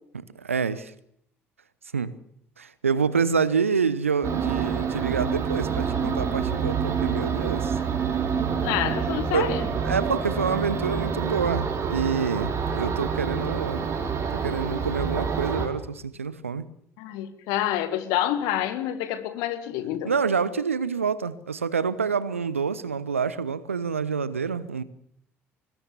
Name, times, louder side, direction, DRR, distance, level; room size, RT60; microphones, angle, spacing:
voice 1, 0.4-0.9 1.9-2.1 2.6-7.8 9.3-9.6 9.8-13.9 14.3-16.6 20.0-24.8, right 5 dB, 80° right, 0.9 m, -27 dB
sound 1, 4.2-15.7, right 6 dB, 45° right, 4.6 m, -27 dB
voice 2, 8.6-9.7 17.0-20.1, left 12 dB, 60° left, 2.0 m, -28 dB
22.0 x 20.0 x 7.0 m
figure-of-eight pair, 50°, 7 cm